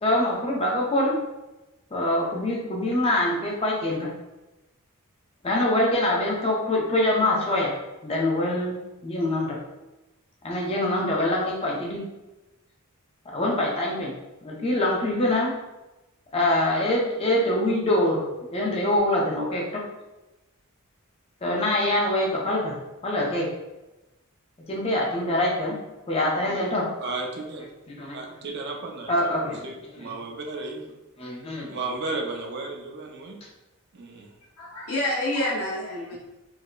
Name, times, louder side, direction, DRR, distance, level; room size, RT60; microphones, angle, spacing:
voice 1, 0.0-1.2 1.9-4.1 5.4-7.8 8.0-9.6 10.4-12.0 13.3-14.1 14.4-15.6 16.3-18.2 18.5-19.8 21.4-22.8 23.0-23.5 24.7-25.8 26.1-26.9 27.9-28.2 29.1-29.6 30.0-30.1 31.2-31.8, left 1 dB, 25° left, -3 dB, 0.6 m, -24 dB
voice 2, 27.0-27.7 28.1-30.9 31.6-33.4 33.9-34.3, right 3 dB, 50° right, 1 dB, 0.5 m, -34 dB
voice 3, 34.6-36.2, left 1 dB, 85° left, -4 dB, 1.1 m, -28 dB
4.7 x 2.0 x 2.2 m, 1.0 s
head